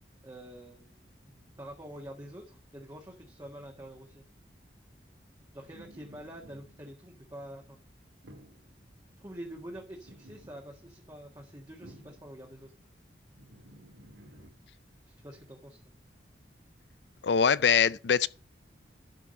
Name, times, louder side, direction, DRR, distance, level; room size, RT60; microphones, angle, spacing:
voice 1, 0.2-4.2 5.5-7.8 9.2-12.7 15.1-15.9, right 1 dB, 20° right, 1.6 m, -46 dB
sound 1, 5.7-7.5 8.2-8.8 9.7-10.7 11.4-12.4 13.3-14.5, equal, 85° right, 2.0 m, -54 dB
voice 2, 17.2-18.3, left 7 dB, 70° left, 0.5 m, -23 dB
12.0 x 5.0 x 6.4 m
head